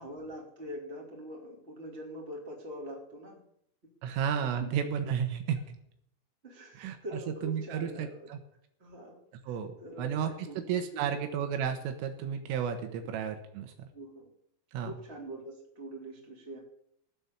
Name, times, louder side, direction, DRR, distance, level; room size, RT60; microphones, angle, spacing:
voice 1, 0.0-3.4 4.0-4.2 6.4-8.3 8.8-9.2 9.5-11.2 13.9-14.3 14.8-16.6, equal, 15° right, -2 dB, 2.9 m, -44 dB
voice 2, 4.0-5.6 6.8-8.4 9.5-13.9 14.7-14.9, right 8 dB, 80° right, 6 dB, 3.7 m, -33 dB
16.5 x 9.7 x 7.0 m, 0.74 s
omnidirectional pair, 6.0 m